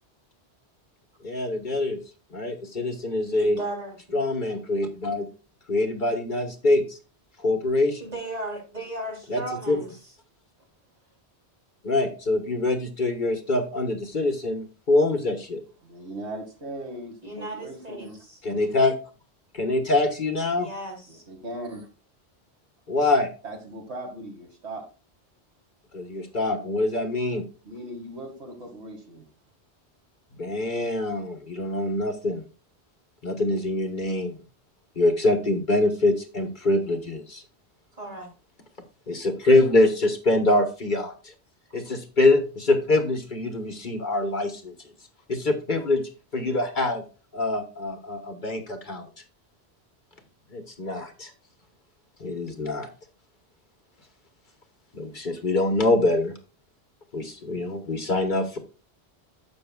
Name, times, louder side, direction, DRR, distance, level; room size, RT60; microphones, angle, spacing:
voice 1, 1.2-2.0 2.3-3.6 4.1-5.3 5.7-7.0 7.4-8.0 9.3-9.4 9.7-9.8 11.8-15.6 18.4-18.9 19.5-20.7 22.9-23.3 25.9-27.4 30.4-32.4 33.2-34.4 35.0-37.4 39.1-41.3 41.7-44.7 45.3-46.0 46.3-47.0 47.3-49.1 50.5-51.3 52.2-52.9 54.9-56.3 57.1-58.6, left 2 dB, 50° left, 7 dB, 1.3 m, -24 dB
voice 2, 3.4-4.0 8.0-10.0 17.2-18.4 20.6-21.2 38.0-38.3, right 1 dB, 35° right, -1 dB, 3.6 m, -35 dB
voice 3, 15.8-18.2 21.1-21.9 23.4-24.9 27.6-29.3, right 1 dB, 80° right, 3 dB, 2.3 m, -38 dB
11.5 x 7.9 x 2.3 m, 0.33 s
omnidirectional pair, 1.1 m